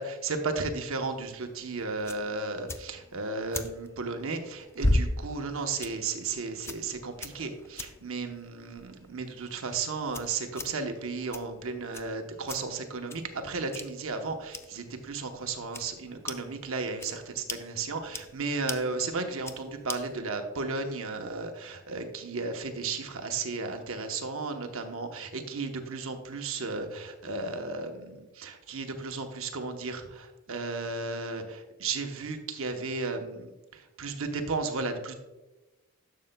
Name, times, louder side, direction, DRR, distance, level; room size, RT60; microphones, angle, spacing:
voice 1, 0.0-35.1, right 3 dB, 65° right, 5 dB, 0.9 m, -34 dB
sound 1, 1.0-20.2, left 1 dB, 10° left, 0.3 m, -38 dB
11.5 x 6.6 x 2.2 m, 1.1 s
head